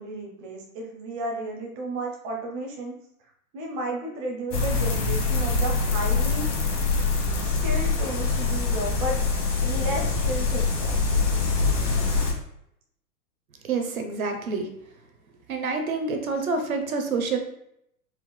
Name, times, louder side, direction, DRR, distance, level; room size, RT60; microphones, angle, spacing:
voice 1, 0.0-2.9 3.5-6.5 7.4-9.2 9.6-11.0, right 1 dB, 25° right, 0 dB, 0.7 m, -33 dB
sound 1, 4.5-12.3, left 4 dB, 55° left, 1.4 m, -24 dB
voice 2, 13.6-14.7 15.5-17.4, right 4 dB, 60° right, 5 dB, 0.8 m, -27 dB
4.5 x 3.7 x 2.2 m, 0.76 s
figure-of-eight pair, 110°, 46 cm